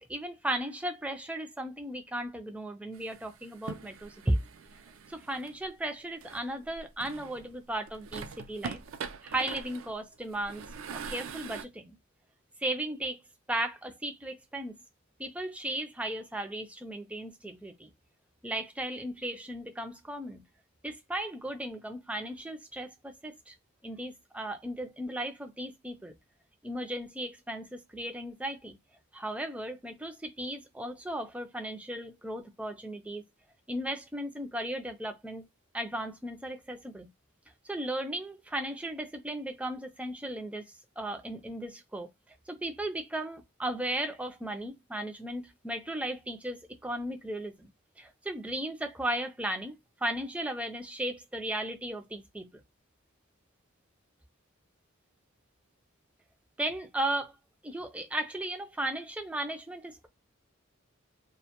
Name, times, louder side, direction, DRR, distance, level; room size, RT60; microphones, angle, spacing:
voice 1, 0.0-4.4 5.1-8.8 9.2-10.6 11.1-12.0 12.6-13.2 13.5-14.7 15.2-17.9 18.4-20.4 20.8-23.5 23.8-26.1 26.6-28.8 29.1-33.2 33.7-35.4 35.7-37.1 37.6-42.1 42.5-47.7 48.0-52.5 56.6-57.3 57.6-60.1, right 1 dB, 5° right, 0.3 m, -36 dB
sound 1, 2.9-5.5 6.2-7.5 7.9-11.6, right 6 dB, 75° right, 0.4 m, -43 dB
2.1 x 2.1 x 2.8 m
head